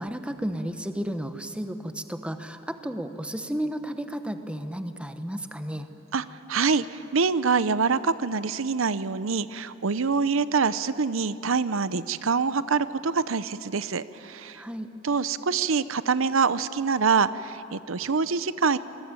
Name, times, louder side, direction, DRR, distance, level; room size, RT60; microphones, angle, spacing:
voice 1, 0.0-5.9 14.5-14.9, equal, 5° right, 8 dB, 1.0 m, -33 dB
voice 2, 6.1-14.6 15.0-18.8, right 5 dB, 85° right, 15 dB, 0.7 m, -25 dB
26.0 x 20.5 x 9.0 m, 2.9 s
head